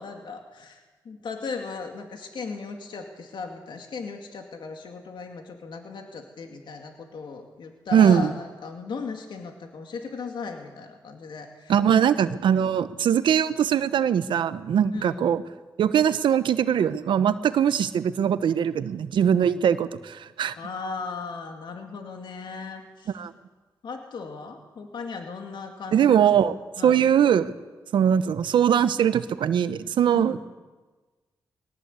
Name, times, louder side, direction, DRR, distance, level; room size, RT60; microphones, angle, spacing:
voice 1, 0.0-12.4 14.9-15.4 20.6-23.2 23.8-26.2 26.8-27.1 30.1-30.4, left 4 dB, 70° left, 4 dB, 2.3 m, -37 dB
voice 2, 7.9-8.3 11.7-15.4 15.8-20.5 23.1-23.3 25.9-26.5 26.8-27.5 27.9-30.4, right 8 dB, 85° right, 13 dB, 1.0 m, -21 dB
21.0 x 18.0 x 8.3 m, 1.3 s
cardioid pair, 60°, 8 cm